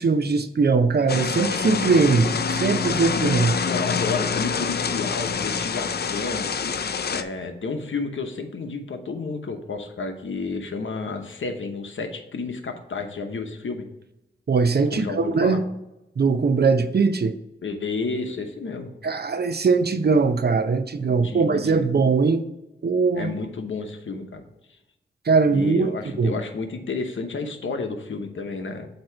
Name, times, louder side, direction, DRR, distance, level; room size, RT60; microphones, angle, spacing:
voice 1, 0.0-3.6 14.5-15.6 16.2-17.3 19.0-22.4 22.8-23.3 25.3-26.3, right 4 dB, 55° right, 10 dB, 0.7 m, -21 dB
sound 1, 1.1-7.2, left 6 dB, 55° left, 0.5 m, -26 dB
voice 2, 3.6-6.5 7.1-13.9 14.9-15.6 17.6-18.9 21.0-21.9 23.1-24.4 25.5-28.9, left 4 dB, 75° left, 5 dB, 0.9 m, -31 dB
7.8 x 2.9 x 5.8 m, 0.93 s
cardioid pair, 60°, 20 cm